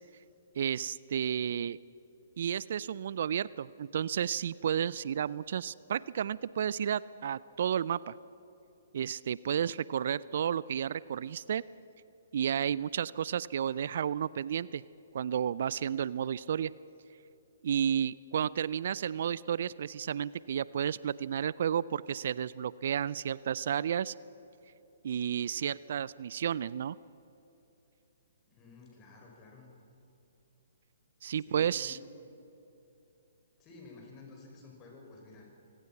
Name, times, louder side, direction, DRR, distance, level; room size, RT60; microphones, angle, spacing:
voice 1, 0.6-1.8 2.4-8.1 8.9-11.6 12.3-14.8 15.1-16.7 17.6-24.1 25.0-27.0 31.2-32.0, right 9 dB, 55° right, 21 dB, 0.4 m, -32 dB
voice 2, 28.5-29.7 31.5-32.0 33.6-35.5, left 3 dB, 25° left, 0 dB, 5.9 m, -52 dB
26.0 x 18.0 x 6.0 m, 2.9 s
figure-of-eight pair, 125°, 0 cm